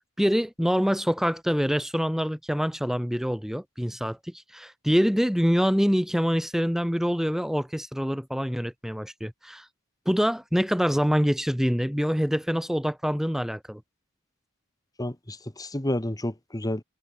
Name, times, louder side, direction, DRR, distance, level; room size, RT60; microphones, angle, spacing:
voice 1, 0.2-9.7 10.1-13.8, equal, ahead, 3.4 m, -25 dB
voice 2, 15.0-16.8, left 1 dB, 15° left, 1.7 m, -30 dB
head